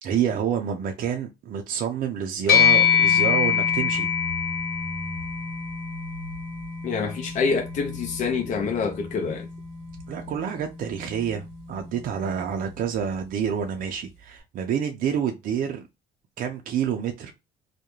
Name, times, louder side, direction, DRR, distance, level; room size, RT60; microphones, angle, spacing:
voice 1, 0.0-4.1 10.1-15.8 16.4-17.3, right 8 dB, 55° right, 0.5 m, -28 dB
sound 1, 2.5-12.1, left 8 dB, 75° left, 1.0 m, -25 dB
voice 2, 6.8-9.5, left 5 dB, 45° left, 0.5 m, -26 dB
2.4 x 2.1 x 2.9 m
cardioid pair, 110°, 17 cm